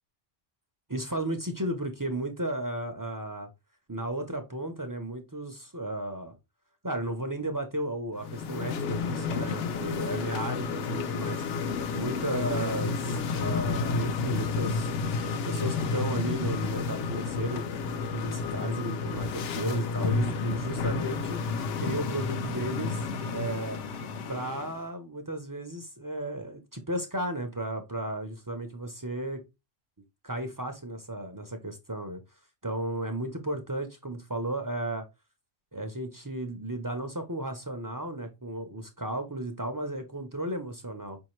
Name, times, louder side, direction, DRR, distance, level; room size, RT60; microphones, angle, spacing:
voice 1, 0.9-3.5 3.9-6.3 6.8-11.4 11.9-15.0 15.4-17.7 18.1-21.4 21.8-23.0 23.3-23.8 24.3-29.4 30.2-32.2 32.6-35.0 35.7-41.2, right 1 dB, 25° right, 0.4 m, -34 dB
sound 1, 8.2-24.8, left 4 dB, 75° left, 0.9 m, -31 dB
5.0 x 2.7 x 3.0 m
omnidirectional pair, 1.2 m